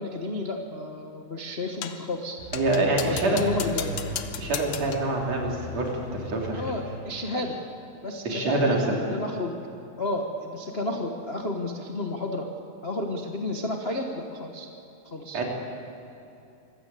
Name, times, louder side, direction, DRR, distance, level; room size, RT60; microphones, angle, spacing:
voice 1, 0.0-2.4 2.8-4.0 6.5-7.6 8.0-8.8 9.1-9.5 10.0-12.5 12.8-14.7 15.1-15.4, left 2 dB, 35° left, 1 dB, 1.0 m, -31 dB
sound 1, 1.8-2.1 2.5-5.1, left 10 dB, 70° left, 2.1 m, -36 dB
sound 2, 2.4-7.0, equal, 85° right, 7.0 m, -37 dB
voice 2, 2.5-3.4 4.4-6.6 8.3-8.8 15.3-15.4, right 2 dB, 60° right, -1 dB, 4.4 m, -26 dB
25.0 x 16.0 x 8.4 m, 2.8 s
omnidirectional pair, 3.3 m